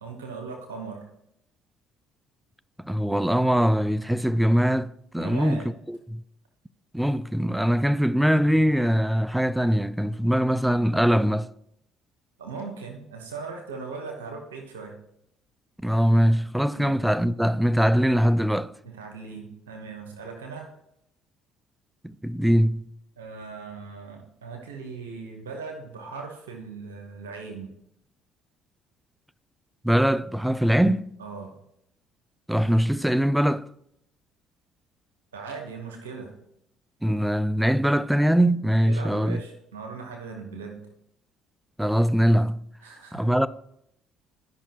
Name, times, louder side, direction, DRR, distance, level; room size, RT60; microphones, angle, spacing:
voice 1, 0.0-1.0 5.2-5.7 12.4-14.9 16.7-17.0 18.8-20.7 23.2-27.7 31.2-31.5 35.3-36.3 38.8-40.8 42.8-43.4, right 4 dB, 90° right, 1.1 m, -39 dB
voice 2, 2.8-5.6 5.9-6.2 6.9-11.5 15.8-18.7 22.0-22.9 29.8-31.1 32.5-33.7 37.0-39.4 41.8-42.7 43.1-43.5, equal, 5° right, 0.4 m, -22 dB
12.5 x 5.5 x 2.9 m
hypercardioid pair, 60°, 0 cm